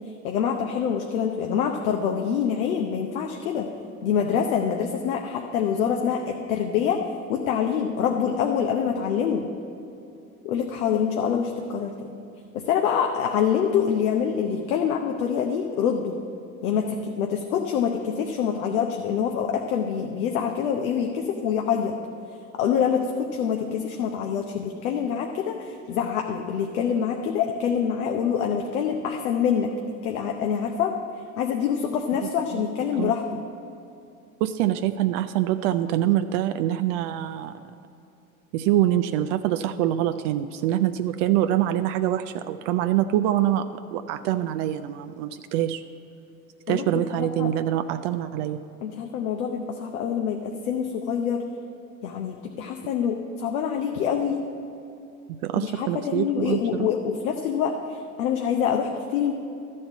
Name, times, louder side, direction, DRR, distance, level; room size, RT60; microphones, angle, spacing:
voice 1, 0.2-3.7 4.0-7.0 7.3-9.4 10.4-12.1 12.5-16.2 16.6-22.0 22.6-29.7 30.0-30.9 31.4-33.4 46.7-47.5 48.8-51.4 52.0-54.4 55.6-59.3, left 7 dB, 75° left, 3 dB, 0.8 m, -25 dB
voice 2, 32.2-32.6 32.9-33.1 34.4-37.5 38.5-45.8 46.7-48.6 52.8-52.9 55.4-56.9, right 12 dB, 60° right, 9 dB, 0.5 m, -25 dB
12.5 x 4.3 x 8.0 m, 2.7 s
hypercardioid pair, 70°, 42 cm